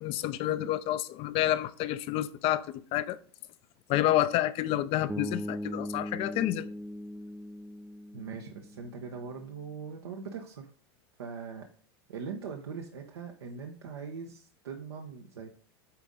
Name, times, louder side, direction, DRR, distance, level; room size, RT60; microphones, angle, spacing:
voice 1, 0.0-3.2 3.9-6.7, left 13 dB, 50° left, 0.6 m, -29 dB
Bass guitar, 5.1-9.2, left 1 dB, 5° right, 0.4 m, -39 dB
voice 2, 8.1-10.7 11.2-11.7 12.1-15.5, right 5 dB, 85° right, 1.0 m, -41 dB
8.8 x 4.0 x 3.7 m
hypercardioid pair, 100°, 13 cm